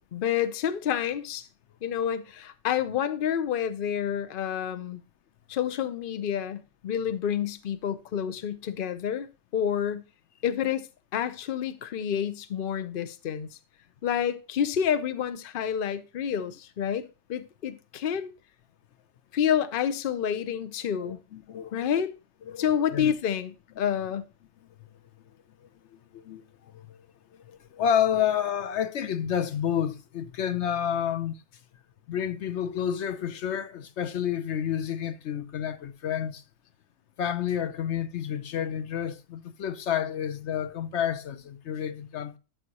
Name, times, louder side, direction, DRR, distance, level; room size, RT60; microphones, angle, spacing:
voice 1, 0.1-1.5 1.8-5.0 5.5-9.3 9.5-10.0 10.4-10.9 11.1-13.5 14.0-18.3 19.3-21.2 21.7-22.1 22.6-24.3, left 9 dB, 55° left, 0.8 m, -29 dB
voice 2, 21.0-21.9 22.5-22.6 22.9-23.2 26.1-26.4 26.7-27.0 27.5-31.4 32.1-36.4 37.2-42.4, left 9 dB, 80° left, 1.0 m, -29 dB
12.5 x 5.8 x 2.9 m
omnidirectional pair, 1.2 m